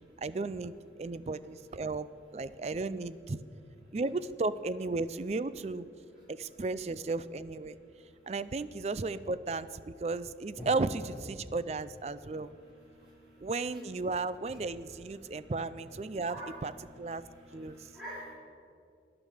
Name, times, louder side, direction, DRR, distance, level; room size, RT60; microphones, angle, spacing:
voice 1, 0.0-2.1 2.3-3.4 3.9-5.9 6.3-7.8 8.3-12.5 13.4-16.4 16.6-16.7 17.0-17.2 17.5-17.9, right 3 dB, 35° right, 14 dB, 0.4 m, -34 dB
voice 2, 12.9-13.5 15.2-15.5 16.2-16.5 17.2-18.3, equal, 5° right, -13 dB, 4.0 m, -47 dB
18.0 x 11.0 x 5.0 m, 2.5 s
head